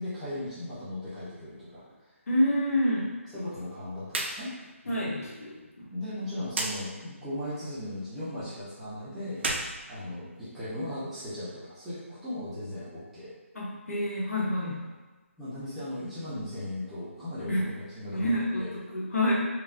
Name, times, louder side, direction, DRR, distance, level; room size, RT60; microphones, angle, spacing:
voice 1, 0.0-1.8 3.3-4.5 5.9-9.4 9.9-13.3 15.4-18.7, left 1 dB, 5° right, -14 dB, 0.5 m, -37 dB
voice 2, 2.3-3.1 4.9-5.9 13.5-14.8 17.5-17.6 18.1-19.3, left 1 dB, 85° left, -5 dB, 1.0 m, -28 dB
sound 1, 4.0-4.4 4.7-4.8 6.5-6.7 9.3-10.6, right 2 dB, 50° right, 0.4 m, -32 dB
3.0 x 2.3 x 2.5 m, 1.2 s
figure-of-eight pair, 165°, 8 cm